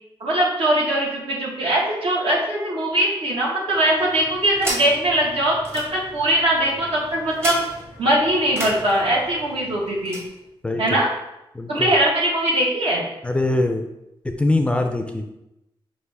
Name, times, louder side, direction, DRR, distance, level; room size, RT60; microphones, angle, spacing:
voice 1, 0.2-7.6 8.0-10.2 10.8-11.1 11.7-13.0, right 1 dB, 75° right, -3 dB, 1.3 m, -21 dB
sound 1, 3.7-10.3, right 1 dB, 25° right, 0.9 m, -35 dB
voice 2, 10.6-11.0 11.5-11.9 13.2-13.8 14.2-15.3, left 2 dB, 10° left, 5 dB, 0.4 m, -23 dB
6.0 x 2.5 x 3.4 m, 0.88 s
wide cardioid pair, 115°, 10 cm